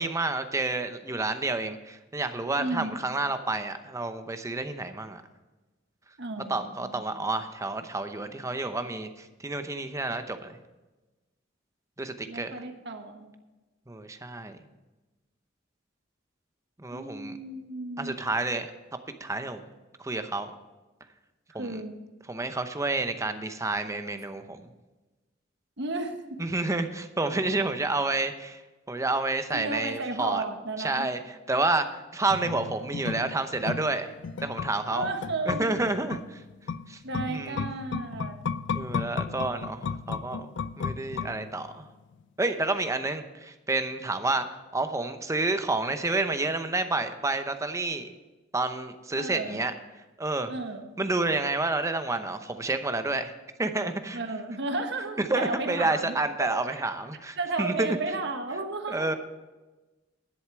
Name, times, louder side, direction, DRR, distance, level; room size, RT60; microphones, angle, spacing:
voice 1, 0.0-5.2 6.5-10.6 12.0-12.5 13.9-14.6 16.8-17.4 18.0-18.7 19.2-19.6 20.0-20.5 21.5-21.8 22.3-24.6 26.4-28.6 28.9-30.4 30.8-34.1 34.4-35.1 35.5-36.4 36.9-37.0 37.3-37.7 38.7-40.5 40.8-41.9 42.4-48.1 48.5-49.7 50.2-50.5 51.0-53.3 53.6-54.2 55.2-58.0 58.9-59.1, right 2 dB, 15° right, 9 dB, 0.7 m, -29 dB
voice 2, 2.6-2.9 6.2-7.0 12.3-13.3 16.9-18.2 21.6-22.0 25.8-26.2 29.5-31.1 34.9-35.7 37.0-38.4 49.1-49.6 50.5-50.9 54.1-56.8 57.4-59.1, right 2 dB, 65° right, 5 dB, 1.4 m, -33 dB
sound 1, 32.3-41.8 42.1-42.2, left 5 dB, 65° left, 0.4 m, -35 dB
11.0 x 7.9 x 6.1 m, 1.1 s
head